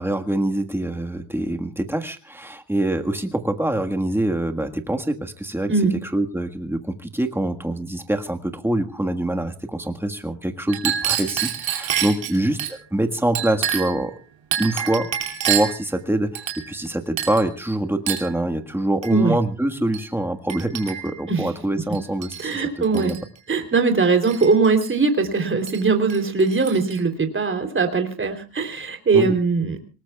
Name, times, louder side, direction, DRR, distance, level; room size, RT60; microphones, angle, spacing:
voice 1, 0.0-5.7 6.0-14.1 14.6-15.1 15.4-23.2 29.1-29.3, right 1 dB, 5° right, 5 dB, 1.6 m, -25 dB
Chink clink, 10.7-12.7 13.4-14.0 14.5-15.8 16.4-16.9 17.2-17.5 18.1-18.3 19.0-19.2 19.9-20.1 20.5-21.2 21.9-22.5 22.8-23.2 24.2-24.9 25.7-25.8 26.1-27.0, right 9 dB, 65° right, 2.8 m, -27 dB
voice 2, 22.4-23.1 23.5-29.8, right 4 dB, 25° right, 5 dB, 3.3 m, -20 dB
25.5 x 19.5 x 2.4 m, 0.33 s
cardioid pair, 120°, 49 cm